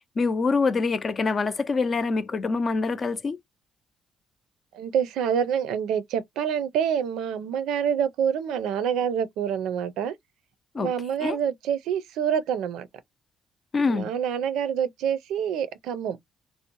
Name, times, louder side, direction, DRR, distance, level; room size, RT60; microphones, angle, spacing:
voice 1, 0.2-3.4 10.7-10.9 11.2-11.4 13.7-14.1, left 4 dB, 40° left, 0.5 m, -25 dB
voice 2, 4.7-10.1 10.8-12.9 13.9-16.2, right 8 dB, 90° right, 0.4 m, -27 dB
2.6 x 2.0 x 2.9 m
cardioid pair, 90°, 0 cm